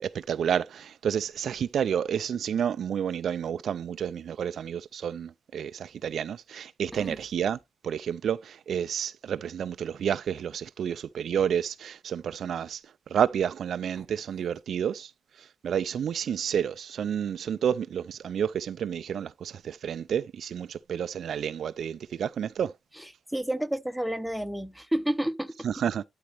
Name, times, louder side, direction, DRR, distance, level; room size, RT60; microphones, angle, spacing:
voice 1, 0.0-7.6 7.8-12.8 13.1-15.1 15.4-22.7 25.6-26.0, right 8 dB, 60° right, 0.3 m, -30 dB
voice 2, 23.0-25.5, right 1 dB, ahead, 0.7 m, -30 dB
12.0 x 4.0 x 3.3 m
cardioid pair, 120°, 0 cm